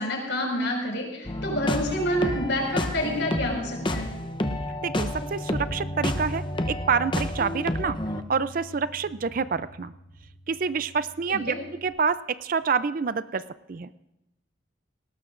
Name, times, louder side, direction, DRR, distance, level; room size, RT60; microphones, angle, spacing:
voice 1, 0.0-4.1 11.3-11.6, left 1 dB, 70° left, 0 dB, 5.2 m, -28 dB
sound 1, 1.2-8.2, left 1 dB, 25° left, 0.8 m, -30 dB
voice 2, 4.8-8.0 8.3-9.9 10.5-13.4 13.7-13.9, right 5 dB, 45° right, 14 dB, 0.4 m, -27 dB
Bass guitar, 5.7-11.9, equal, 45° left, 1.6 m, -41 dB
19.0 x 18.5 x 2.5 m, 0.91 s
head